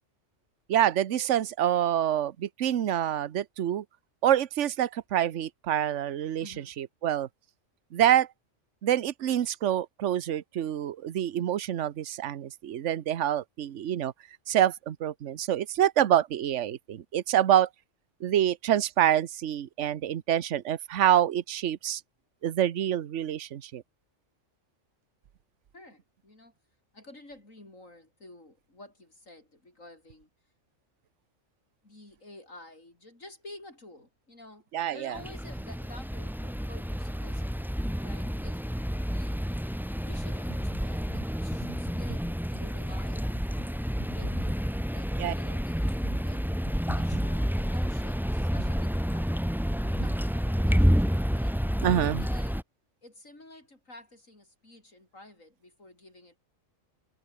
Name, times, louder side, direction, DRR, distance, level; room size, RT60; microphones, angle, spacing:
voice 1, 0.7-3.8 4.2-6.5 6.8-7.3 7.9-8.3 8.8-14.1 14.5-17.7 18.2-22.0 22.4-23.8 34.7-35.1 41.7-41.8 45.2-45.3 51.8-52.2, right 11 dB, 65° right, 1.2 m, -26 dB
voice 2, 6.4-6.7 25.7-26.5 26.9-30.3 31.8-38.7 39.1-39.4 40.0-46.5 46.9-49.5 49.9-51.6 52.2-52.6 53.0-56.4, left 2 dB, 75° left, 7.0 m, -51 dB
sound 1, 35.1-52.6, equal, ahead, 2.4 m, -29 dB
omnidirectional pair, 1.4 m